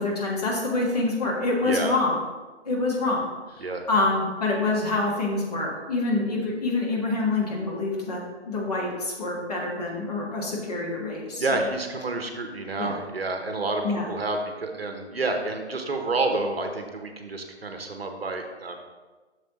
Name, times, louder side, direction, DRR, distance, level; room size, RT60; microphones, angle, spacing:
voice 1, 0.0-2.2 2.6-8.2 8.4-11.4 12.8-12.9 13.8-14.1, left 2 dB, 35° left, -3 dB, 1.6 m, -26 dB
voice 2, 1.6-1.9 3.6-3.8 11.4-18.8, right 2 dB, 55° right, 5 dB, 0.9 m, -29 dB
7.8 x 6.5 x 3.0 m, 1.3 s
figure-of-eight pair, 150°, 35 cm